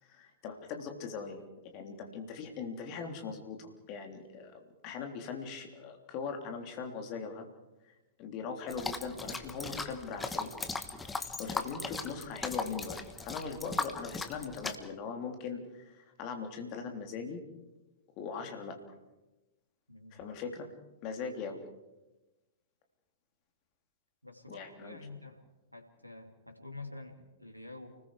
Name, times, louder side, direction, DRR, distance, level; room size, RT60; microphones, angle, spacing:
voice 1, 0.0-1.4 1.7-7.5 7.8-10.5 11.1-17.4 18.2-18.7 20.1-20.7 21.0-21.6 24.5-25.0, left 5 dB, 35° left, 4 dB, 3.3 m, -40 dB
sound 1, 8.7-14.8, left 3 dB, 10° left, 1.4 m, -38 dB
voice 2, 19.9-20.2 24.2-25.4 25.7-28.0, left 2 dB, 90° right, 6 dB, 2.7 m, -48 dB
29.5 x 20.5 x 4.9 m, 1.1 s
figure-of-eight pair, 105°, 0 cm